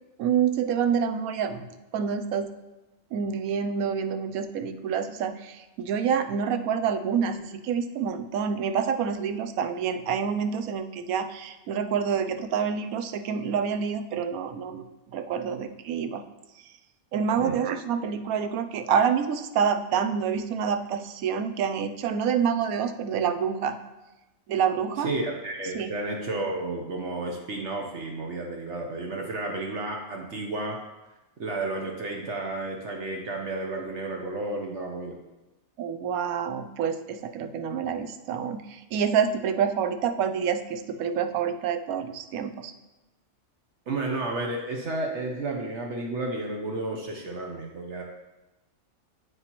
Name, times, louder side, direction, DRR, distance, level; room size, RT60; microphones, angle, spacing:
voice 1, 0.2-1.7 1.9-2.5 3.1-16.2 16.6-16.7 17.1-23.8 24.5-25.1 25.7-25.9 35.8-42.7, right 7 dB, 85° right, 9 dB, 1.1 m, -27 dB
voice 2, 25.0-30.8 31.4-35.2 43.9-48.0, right 2 dB, 60° right, 1 dB, 1.1 m, -32 dB
8.5 x 8.1 x 3.0 m, 1.0 s
omnidirectional pair, 1.5 m